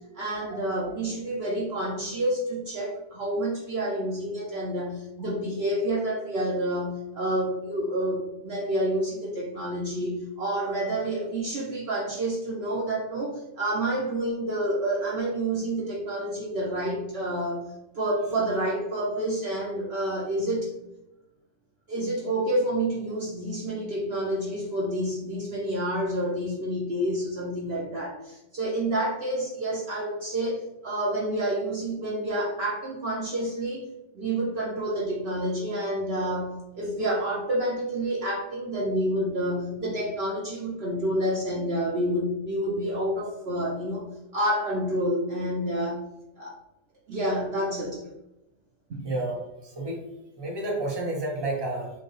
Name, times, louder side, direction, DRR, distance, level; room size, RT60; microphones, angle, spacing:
voice 1, 0.1-20.7 21.9-33.8 34.1-46.0 46.4-46.6 47.1-48.0 48.9-49.1, right 1 dB, 55° right, -3 dB, 0.8 m, -29 dB
voice 2, 49.0-50.0 50.4-51.9, right 2 dB, 20° right, -1 dB, 0.8 m, -30 dB
5.7 x 2.2 x 3.1 m, 0.94 s
omnidirectional pair, 1.4 m